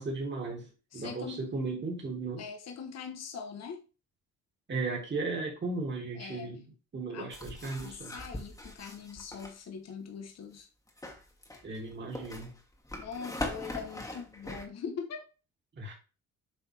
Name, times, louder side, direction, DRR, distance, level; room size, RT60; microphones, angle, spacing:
voice 1, 0.0-2.4 4.7-6.6 6.9-8.2 11.6-12.5 15.8-15.9, right 3 dB, 35° right, 2.6 m, -36 dB
voice 2, 0.9-1.4 2.4-3.8 6.1-6.5 7.1-7.3 7.8-10.7 13.0-15.2, left 6 dB, 60° left, 1.2 m, -42 dB
sound 1, 7.3-9.5 10.9-14.6, left 1 dB, 10° left, 1.7 m, -41 dB
7.8 x 4.1 x 3.4 m
cardioid pair, 90°, 30 cm